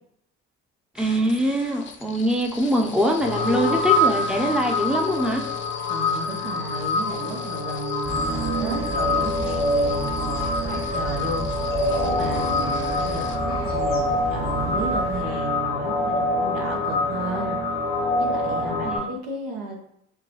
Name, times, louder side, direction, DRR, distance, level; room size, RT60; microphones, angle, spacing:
voice 1, 0.9-5.4 18.8-19.0, equal, ahead, 2 dB, 0.7 m, -23 dB
sound 1, 1.0-13.4, left 4 dB, 35° left, 0.7 m, -41 dB
sound 2, 3.2-19.0, left 2 dB, 70° left, 1.1 m, -25 dB
voice 2, 5.9-11.7 12.0-17.6 18.2-19.8, right 3 dB, 70° right, 0 dB, 1.2 m, -33 dB
sound 3, 8.0-15.2, right 2 dB, 40° right, 1.4 m, -33 dB
5.5 x 2.2 x 3.1 m, 0.71 s
hypercardioid pair, 60°, 34 cm